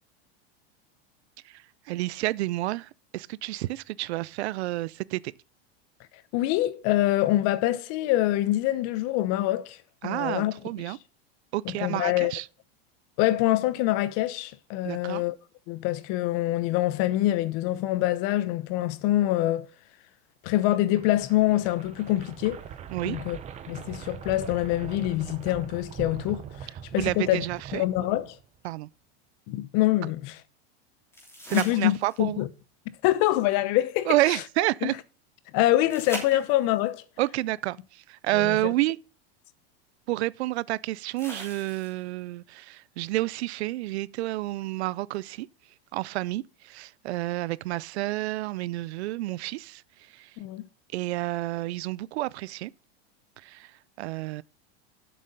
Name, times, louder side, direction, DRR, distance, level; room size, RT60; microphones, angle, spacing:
voice 1, 1.4-5.2 10.0-11.0 11.5-12.5 14.8-15.2 22.9-23.2 26.9-28.2 28.6-28.9 31.4-32.4 34.1-34.9 37.2-39.0 40.1-45.5 45.9-50.3 50.9-52.7 53.4-54.4, right 18 dB, 85° right, 0.5 m, -30 dB
voice 2, 6.3-9.8 10.0-10.5 10.9-11.0 11.8-12.3 13.2-15.3 15.7-19.7 20.4-22.6 23.0-23.4 23.7-26.7 26.9-27.4 27.7-28.4 29.5-30.4 31.5-32.5 33.0-34.1 34.8-34.9 35.5-37.0 38.4-38.6 50.4-50.6, left 15 dB, 45° left, 0.8 m, -25 dB
sound 1, 20.6-28.6, right 8 dB, 20° right, 0.7 m, -42 dB
sound 2, 31.1-32.4 35.9-36.9 38.8-38.9 41.2-42.2 45.1-45.2, equal, 10° left, 3.0 m, -41 dB
7.5 x 6.6 x 5.2 m
supercardioid pair, 140°, 32 cm